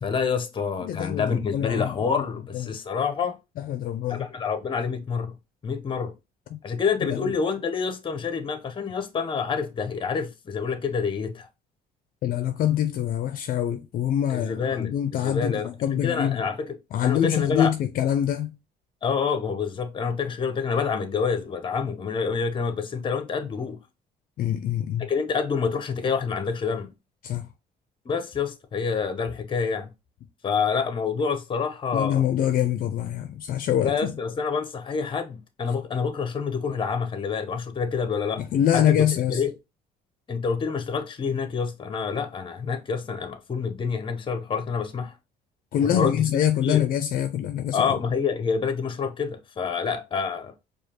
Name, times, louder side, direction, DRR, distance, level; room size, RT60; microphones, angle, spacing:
voice 1, 0.0-3.4 4.1-5.4 5.6-6.1 6.6-11.5 14.3-16.7 17.0-17.7 19.0-23.8 25.0-26.9 28.1-29.9 30.4-32.3 33.8-38.4 38.7-39.6 40.3-45.1 45.8-46.3 46.6-46.9 47.7-50.5, left 5 dB, 30° left, 0.7 m, -27 dB
voice 2, 0.8-1.9 2.5-2.8 3.6-4.3 6.5-6.6 7.0-7.3 12.2-16.4 16.9-18.5 24.4-25.1 27.2-27.5 31.9-34.1 38.4-39.4 45.7-47.9, left 10 dB, 60° left, 0.4 m, -25 dB
4.9 x 2.3 x 2.8 m
cardioid pair, 110°, 17 cm